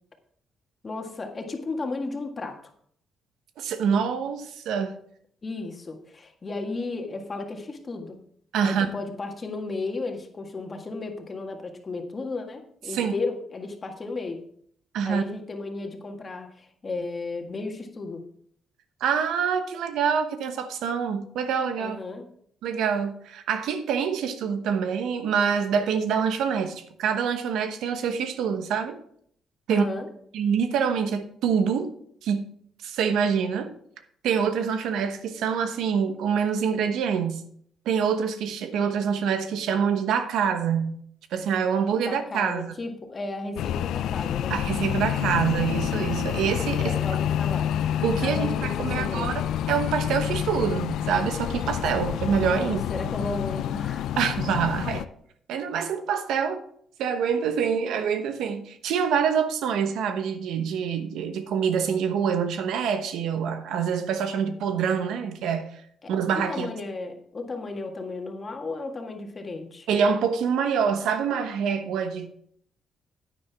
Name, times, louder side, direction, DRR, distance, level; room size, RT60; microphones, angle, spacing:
voice 1, 0.8-2.7 5.4-8.2 8.6-14.4 15.0-18.2 21.8-22.3 29.7-30.1 42.0-44.6 46.7-47.7 48.2-49.4 52.6-54.1 66.0-69.9, left 3 dB, 35° left, 1.8 m, -34 dB
voice 2, 3.6-5.0 8.5-8.9 12.9-13.1 14.9-15.2 19.0-22.0 22.6-29.0 29.7-29.8 30.3-31.9 32.2-32.5 32.8-33.7 34.2-37.4 37.9-41.0 41.3-42.7 44.5-46.9 48.0-49.4 49.7-52.8 54.2-55.0 55.5-56.6 57.0-65.7 66.1-66.7 69.9-72.3, right 7 dB, 85° right, 1.0 m, -26 dB
sound 1, 43.6-55.0, left 10 dB, 80° left, 0.4 m, -28 dB
9.8 x 9.5 x 3.5 m
cardioid pair, 90°, 0 cm